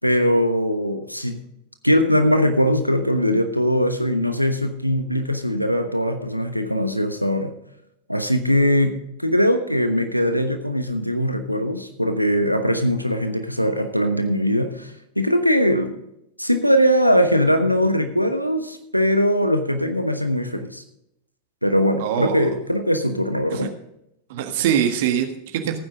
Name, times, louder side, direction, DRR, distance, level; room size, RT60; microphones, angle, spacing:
voice 1, 0.0-1.4 1.8-7.5 8.1-15.9 16.4-20.8 21.6-23.7, equal, 90° left, 8 dB, 1.1 m, -21 dB
voice 2, 22.0-22.5 23.5-23.7 24.3-25.8, right 9 dB, 55° right, 6 dB, 1.5 m, -23 dB
16.0 x 9.6 x 3.7 m, 0.79 s
figure-of-eight pair, 90°, 0 cm